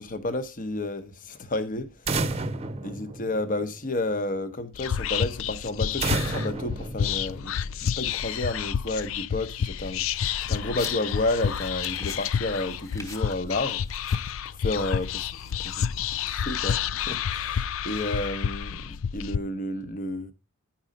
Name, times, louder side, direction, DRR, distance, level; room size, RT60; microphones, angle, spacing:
voice 1, 0.0-2.3 2.8-7.5 7.8-10.1 10.5-13.8 14.6-15.2 15.6-15.8 16.3-17.6 17.8-20.3, left 2 dB, 40° left, 1.0 m, -31 dB
sound 1, 2.1-3.9 6.0-7.8, right 3 dB, 30° right, 0.7 m, -31 dB
Whispering, 4.7-19.4, left 8 dB, 70° left, 0.4 m, -29 dB
sound 2, 10.1-16.3, left 2 dB, 15° left, 1.3 m, -48 dB
10.5 x 4.2 x 5.2 m
head